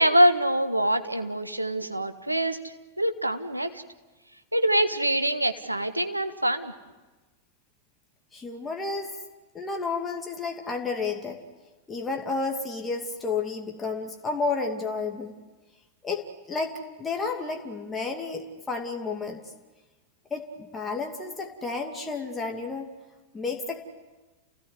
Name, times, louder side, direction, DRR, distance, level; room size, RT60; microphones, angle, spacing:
voice 1, 0.0-3.8 4.5-6.7, right 1 dB, 85° right, 8 dB, 1.4 m, -24 dB
voice 2, 8.3-9.1 9.5-11.4 11.9-15.3 16.0-19.4 20.3-22.9 23.3-23.8, left 4 dB, 15° left, 2 dB, 2.5 m, -31 dB
29.0 x 17.0 x 9.6 m, 1.2 s
figure-of-eight pair, 90°, 0 cm